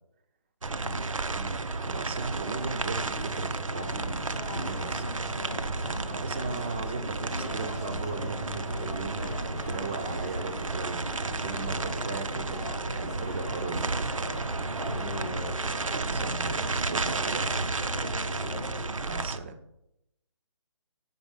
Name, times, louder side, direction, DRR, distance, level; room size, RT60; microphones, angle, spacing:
sound 1, 0.6-19.4, right 3 dB, 90° right, 0.5 m, -32 dB
voice 1, 0.7-1.1 14.9-15.7 18.3-18.7, left 2 dB, 85° left, 1 dB, 0.6 m, -39 dB
voice 2, 1.3-5.3 5.7-13.9 15.7-17.5 19.1-19.6, right 4 dB, 20° right, 8 dB, 0.4 m, -38 dB
sound 2, 2.4-18.9, left 4 dB, 30° left, 0.7 m, -41 dB
5.4 x 4.4 x 5.0 m, 0.84 s
figure-of-eight pair, 145°, 16 cm